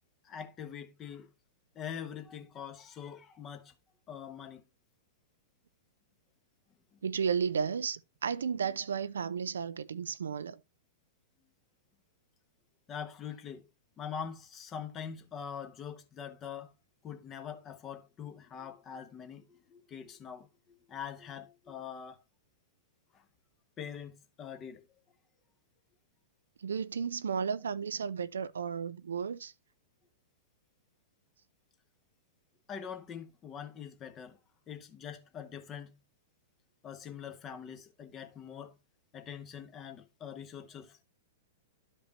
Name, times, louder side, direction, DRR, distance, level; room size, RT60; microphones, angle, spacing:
voice 1, 0.2-1.3 1.7-3.7 4.1-4.6 12.9-13.6 14.0-16.7 17.0-20.5 20.9-22.2 23.1-23.2 23.8-24.9 32.7-34.4 34.7-36.0 36.8-38.8 39.1-41.0, left 8 dB, 25° left, 1.2 m, -43 dB
voice 2, 7.0-10.6 26.6-29.5, right 6 dB, 70° right, 0.4 m, -33 dB
11.5 x 5.2 x 2.9 m
figure-of-eight pair, 100°, 0 cm